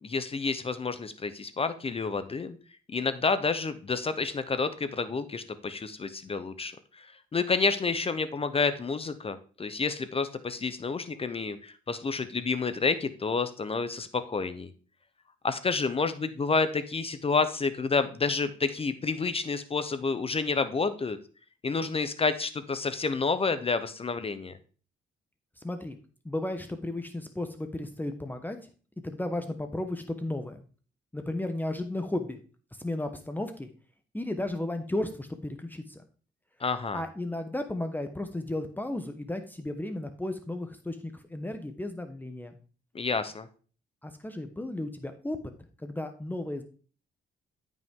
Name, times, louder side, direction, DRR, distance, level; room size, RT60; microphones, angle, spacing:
voice 1, 0.0-2.6 2.9-7.1 7.3-14.7 15.4-21.2 21.6-24.6 36.6-37.0 42.9-43.5, left 4 dB, 30° left, 11 dB, 0.7 m, -29 dB
voice 2, 25.6-26.0 26.2-28.6 29.0-30.6 31.1-32.4 32.8-33.7 34.1-36.0 36.9-42.6 44.0-45.4 45.8-46.6, left 1 dB, 10° left, 7 dB, 1.0 m, -34 dB
12.5 x 5.4 x 3.7 m, 0.39 s
cardioid pair, 90°, 20 cm